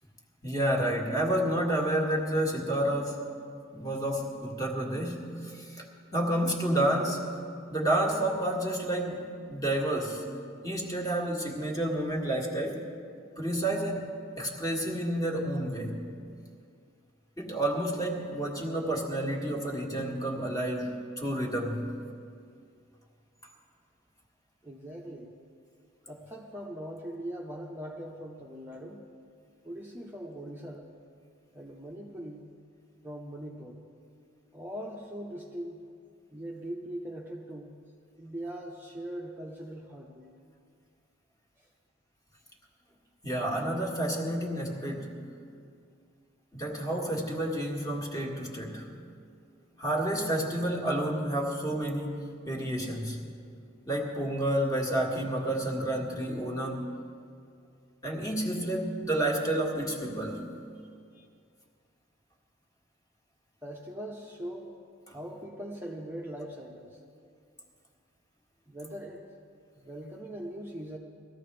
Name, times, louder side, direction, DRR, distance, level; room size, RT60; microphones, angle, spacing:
voice 1, 0.4-3.2 3.7-5.9 6.1-7.3 7.7-10.3 10.6-12.8 13.4-14.1 14.4-16.0 17.4-21.9 43.2-45.2 46.5-48.9 49.8-52.2 52.4-53.2 53.9-56.9 58.0-60.5 65.1-65.2, right 1 dB, 20° left, -1 dB, 1.8 m, -30 dB
voice 2, 24.6-25.3 26.0-29.0 29.6-30.9 31.5-32.5 33.0-33.8 34.5-35.8 36.3-37.8 38.2-40.3 41.6-41.7 63.6-64.7 65.1-67.0 68.7-69.3 69.8-71.0, right 1 dB, 10° right, -3 dB, 0.9 m, -41 dB
20.0 x 14.5 x 3.4 m, 2.3 s
head